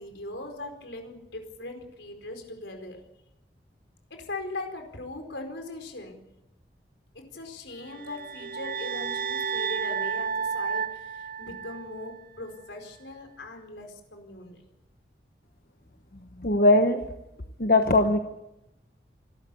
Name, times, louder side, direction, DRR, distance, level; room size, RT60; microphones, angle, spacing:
voice 1, 0.0-3.0 4.1-6.2 7.1-14.6, left 2 dB, 85° left, 5 dB, 4.7 m, -40 dB
sound 1, 7.9-12.2, right 6 dB, 50° right, 0.7 m, -32 dB
voice 2, 16.4-17.0 17.6-18.2, left 2 dB, 50° left, 6 dB, 1.2 m, -20 dB
26.5 x 13.0 x 8.5 m, 0.92 s
head